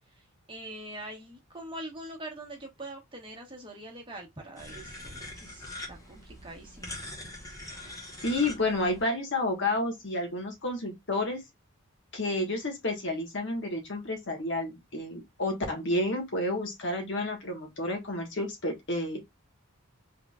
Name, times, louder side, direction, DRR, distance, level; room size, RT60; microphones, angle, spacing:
voice 1, 0.5-7.0, right 1 dB, 20° right, 1.2 m, -43 dB
sound 1, 4.6-9.0, left 2 dB, 15° left, 1.0 m, -43 dB
voice 2, 8.2-11.4 12.1-19.2, left 2 dB, 55° left, 1.4 m, -30 dB
3.7 x 3.6 x 2.3 m
head